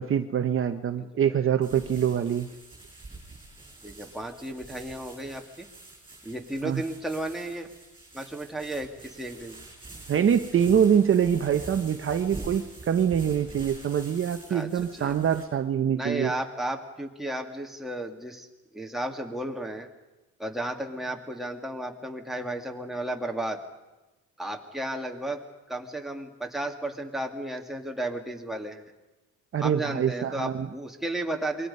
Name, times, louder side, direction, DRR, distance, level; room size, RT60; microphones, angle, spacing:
voice 1, 0.0-2.5 6.6-6.8 10.1-16.3 29.5-30.7, right 8 dB, 40° right, 8 dB, 0.9 m, -24 dB
sound 1, 1.6-15.4, right 2 dB, 15° right, 7.1 m, -46 dB
voice 2, 3.8-5.7 6.2-7.7 8.1-9.6 14.5-14.7 15.0-15.1 15.9-18.5 18.7-19.9 20.4-23.6 24.4-25.4 25.7-28.8 29.6-31.7, right 1 dB, ahead, 1 dB, 2.2 m, -33 dB
27.0 x 22.5 x 5.5 m, 1.1 s
cardioid pair, 145°, 32 cm